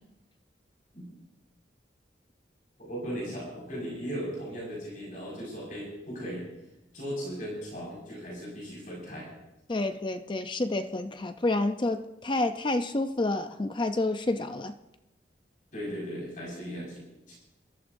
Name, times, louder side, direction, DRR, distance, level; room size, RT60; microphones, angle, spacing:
voice 1, 2.8-6.4 6.9-9.3 15.7-17.3, equal, 45° left, -4 dB, 5.3 m, -37 dB
voice 2, 9.7-14.7, left 2 dB, 25° left, 8 dB, 0.5 m, -29 dB
22.5 x 14.0 x 2.6 m, 0.96 s
head